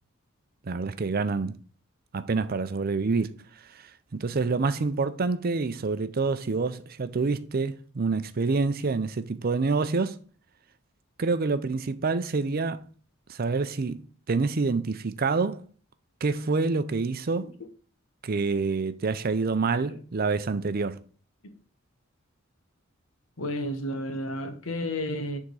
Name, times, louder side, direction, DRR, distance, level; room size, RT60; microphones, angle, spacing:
voice 1, 0.6-1.5 2.1-3.3 4.1-10.2 11.2-12.9 13.3-15.6 16.2-17.5 18.2-21.0, right 4 dB, 45° right, 0.5 m, -27 dB
voice 2, 23.4-25.4, left 1 dB, 85° left, 1.1 m, -32 dB
6.6 x 3.7 x 4.7 m
head